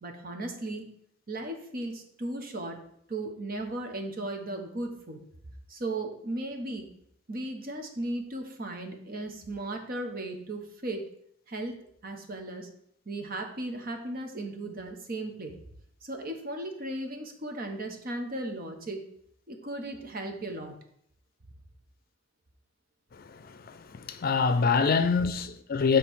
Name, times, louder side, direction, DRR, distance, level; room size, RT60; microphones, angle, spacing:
voice 1, 0.0-0.9 1.3-2.8 3.1-5.2 5.7-6.8 7.3-11.0 11.5-11.8 12.0-12.7 13.1-15.5 16.0-19.0 19.5-20.8, right 2 dB, 50° right, 1.1 m, -36 dB
voice 2, 23.2-26.0, left 5 dB, 50° left, 0.5 m, -26 dB
7.5 x 3.2 x 6.3 m
head